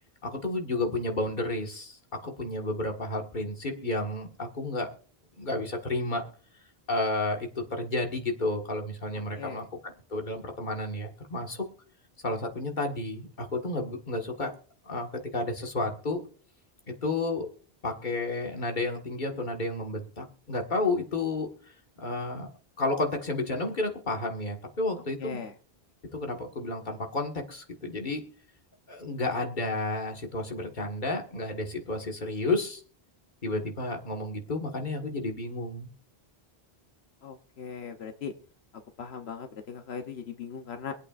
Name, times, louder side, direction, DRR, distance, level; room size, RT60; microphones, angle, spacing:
voice 1, 0.2-4.9 5.4-6.2 6.9-11.6 12.2-14.5 14.9-16.2 17.0-17.5 17.8-21.5 22.0-22.5 22.8-25.4 26.1-28.2 28.9-32.8 33.4-35.9, left 2 dB, 50° left, 2 dB, 1.8 m, -31 dB
voice 2, 25.2-25.5 37.2-38.3 39.0-40.9, left 6 dB, 90° left, 6 dB, 1.1 m, -39 dB
24.5 x 8.4 x 2.5 m, 0.41 s
omnidirectional pair, 1.0 m